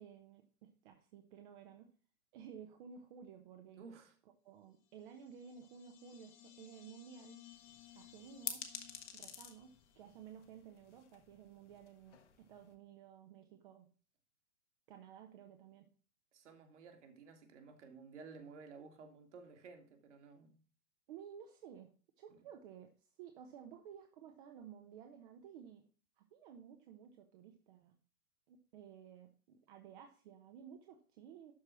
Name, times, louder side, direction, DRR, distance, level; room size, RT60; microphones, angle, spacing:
voice 1, 0.0-1.9 2.3-3.9 4.4-7.4 7.9-8.6 9.1-9.7 10.0-13.9 14.9-15.9 21.1-21.9 22.2-22.9 23.2-25.8 26.2-27.9 28.5-31.5, right 8 dB, 35° right, 1.1 m, -55 dB
voice 2, 3.8-4.1 16.3-20.6 22.3-22.4, right 4 dB, 50° right, 2.3 m, -55 dB
sound 1, 4.9-10.3, left 13 dB, 30° left, 1.4 m, -60 dB
sound 2, 7.5-12.7, left 8 dB, 50° left, 1.7 m, -50 dB
12.0 x 4.6 x 5.8 m
figure-of-eight pair, 115°, 44 cm